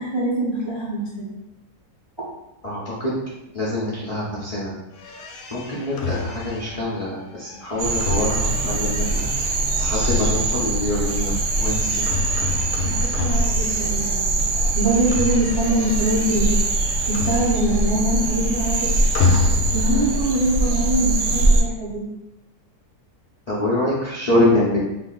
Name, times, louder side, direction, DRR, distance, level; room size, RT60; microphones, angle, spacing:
voice 1, 0.0-1.3 12.8-14.3 14.7-16.6 17.1-18.9 19.7-22.0, right 1 dB, 30° right, -7 dB, 0.5 m, -23 dB
voice 2, 2.6-3.1 3.5-4.7 5.5-9.3 9.8-12.0 23.5-24.8, left 1 dB, 55° left, -7 dB, 0.4 m, -24 dB
sound 1, 5.0-14.2 14.5-18.0 18.2-20.1, left 4 dB, 80° left, 1.1 m, -29 dB
sound 2, 7.8-21.6, right 2 dB, 70° right, 0.7 m, -22 dB
2.6 x 2.6 x 3.8 m, 0.99 s
omnidirectional pair, 1.7 m